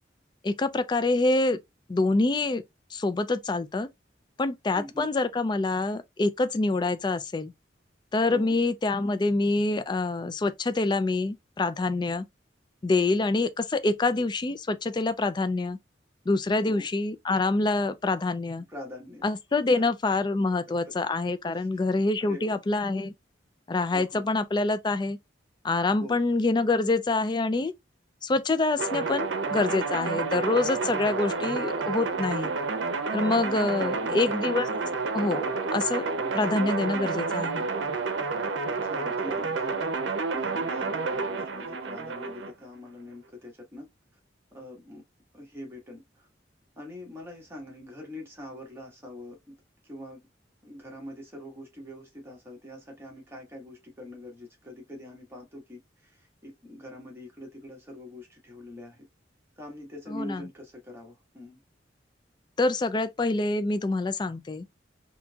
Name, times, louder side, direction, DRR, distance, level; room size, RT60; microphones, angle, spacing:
voice 1, 0.4-1.6 1.9-2.6 2.9-3.9 4.4-7.5 8.1-12.2 12.8-15.8 16.3-18.6 19.2-23.1 23.7-25.2 25.6-27.7 28.2-32.5 33.1-34.7 35.1-36.0 36.3-37.7 60.1-60.4 62.6-64.7, left 3 dB, 25° left, 0.3 m, -26 dB
voice 2, 4.7-5.1 8.3-8.6 16.6-16.9 18.7-19.9 20.7-20.8 21.5-21.8 22.2-22.6 23.9-24.3 26.0-26.2 33.6-34.2 36.2-36.5 38.6-39.9 40.3-43.9 44.5-45.0 45.3-46.3 46.8-49.5 49.8-50.2 50.6-59.1 59.6-61.6, left 1 dB, 15° right, 1.4 m, -44 dB
sound 1, 28.8-42.5, right 4 dB, 85° right, 0.6 m, -30 dB
4.2 x 2.8 x 2.3 m
head